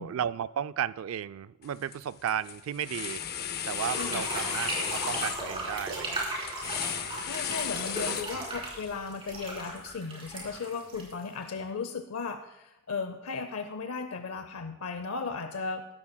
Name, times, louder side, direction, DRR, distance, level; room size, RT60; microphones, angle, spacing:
voice 1, 0.0-3.2 3.7-6.3 6.6-7.1 8.3-8.5, right 9 dB, 70° right, 16 dB, 0.3 m, -34 dB
sound 1, 1.6-2.0 2.3-8.8, left 9 dB, 45° left, 0.5 m, -35 dB
sound 2, 3.6-11.6, right 2 dB, 25° right, 3.7 m, -36 dB
voice 2, 4.0-4.3 7.2-15.9, left 4 dB, 90° left, 8 dB, 0.6 m, -36 dB
15.5 x 13.0 x 2.2 m, 0.93 s
head